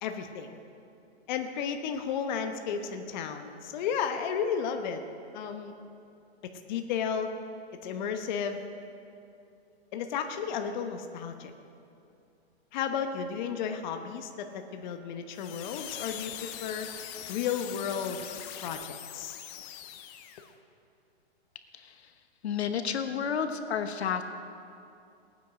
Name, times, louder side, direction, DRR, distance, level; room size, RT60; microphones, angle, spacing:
voice 1, 0.0-0.6 1.3-5.0 5.3-5.7 6.7-7.3 7.8-8.6 9.9-11.5 12.7-16.9 17.3-18.3 18.6-19.4, left 7 dB, 45° left, 6 dB, 1.0 m, -33 dB
sound 1, 15.3-20.5, left 11 dB, 25° left, 0.6 m, -42 dB
voice 2, 21.7-22.1 22.4-24.2, left 7 dB, 80° left, 8 dB, 1.1 m, -31 dB
18.5 x 9.3 x 4.9 m, 2.6 s
hypercardioid pair, 145°, 32 cm